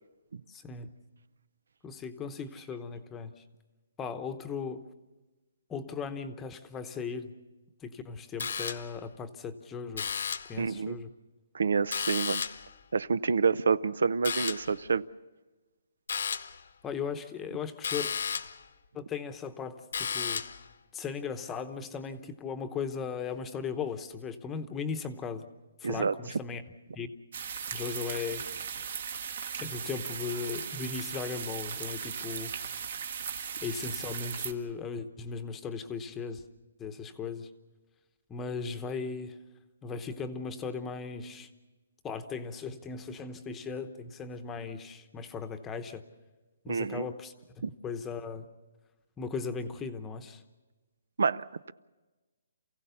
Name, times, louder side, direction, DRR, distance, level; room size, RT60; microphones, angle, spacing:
voice 1, 0.5-0.9 1.8-3.4 4.0-4.8 5.7-7.3 7.8-10.1 10.5-11.1 16.8-18.1 18.9-20.4 20.9-25.5 25.8-26.6 26.9-27.1 27.7-28.5 29.6-32.5 33.6-36.4 36.8-37.5 38.3-39.4 39.8-41.5 42.0-46.0 46.6-48.5 49.2-50.4, left 5 dB, 10° left, 8 dB, 0.9 m, -37 dB
sound 1, 8.4-9.1 9.9-10.6 11.9-12.7 14.2-14.8 16.1-16.6 17.8-18.6 19.9-20.7, left 6 dB, 70° left, 1.0 m, -33 dB
voice 2, 10.6-11.0 11.5-12.4 12.9-15.0 25.8-26.1 46.7-47.1 47.6-47.7 51.2-51.7, right 5 dB, 85° right, 18 dB, 0.6 m, -28 dB
sound 2, 27.3-34.5, right 7 dB, 55° right, 1.7 m, -37 dB
28.5 x 16.0 x 6.9 m, 1.2 s
hypercardioid pair, 170°, 0 cm